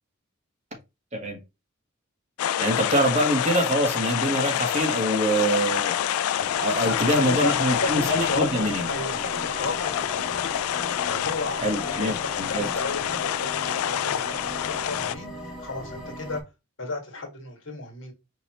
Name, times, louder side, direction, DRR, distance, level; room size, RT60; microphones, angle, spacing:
sound 1, 2.4-15.1, left 10 dB, 85° left, 0.3 m, -27 dB
voice 1, 2.6-5.9 6.6-8.8 11.6-12.7, right 1 dB, 30° right, 1.3 m, -25 dB
sound 2, 4.8-12.8, left 3 dB, 40° left, 1.5 m, -42 dB
sound 3, 6.4-16.4, equal, 5° right, 0.9 m, -39 dB
voice 2, 6.8-10.5 11.1-16.4 16.8-18.1, left 2 dB, 60° left, 1.8 m, -33 dB
5.2 x 3.1 x 3.0 m
head